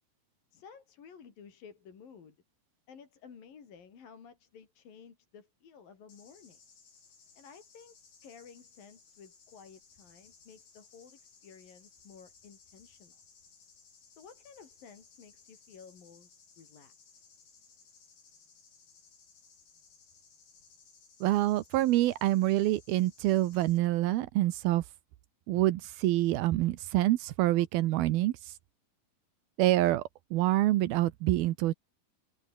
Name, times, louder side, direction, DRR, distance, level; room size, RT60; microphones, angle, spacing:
voice 1, 0.5-2.4 2.9-6.6 7.4-8.0 8.2-13.2 14.1-16.3 16.6-17.3, left 6 dB, 65° left, 5.3 m, -54 dB
sound 1, 6.1-23.8, left 5 dB, 90° left, 8.1 m, -60 dB
voice 2, 21.2-24.8 25.5-28.3 29.6-30.0 30.3-31.7, right 15 dB, 85° right, 2.8 m, -26 dB
omnidirectional pair, 4.4 m